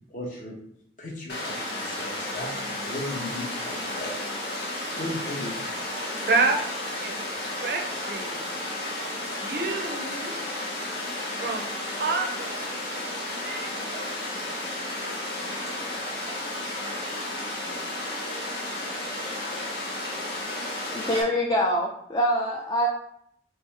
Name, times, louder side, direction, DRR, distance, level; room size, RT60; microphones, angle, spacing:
voice 1, 0.1-0.6 1.0-4.3 4.6-6.1, left 1 dB, 45° left, -2 dB, 1.0 m, -37 dB
Water, 1.3-21.2, left 1 dB, 65° left, 1.1 m, -33 dB
voice 2, 6.3-6.6 7.0-7.1 7.6-8.5 9.4-10.4 11.3-11.7 12.0-12.9 13.4-14.2 15.9-16.3, right 3 dB, 55° right, 4 dB, 0.5 m, -29 dB
voice 3, 20.9-22.9, equal, 20° left, -1 dB, 0.4 m, -24 dB
3.5 x 3.4 x 3.2 m, 0.71 s
head